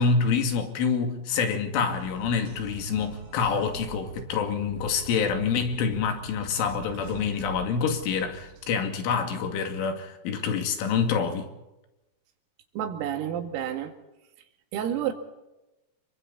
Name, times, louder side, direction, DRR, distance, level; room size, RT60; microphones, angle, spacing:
voice 1, 0.0-11.5, left 6 dB, 70° left, 4.8 m, -27 dB
sound 1, 1.9-9.4, right 7 dB, 40° right, 5.1 m, -44 dB
voice 2, 12.8-13.9 14.7-15.1, right 10 dB, 85° right, 4.8 m, -29 dB
29.0 x 23.5 x 4.2 m
omnidirectional pair, 5.9 m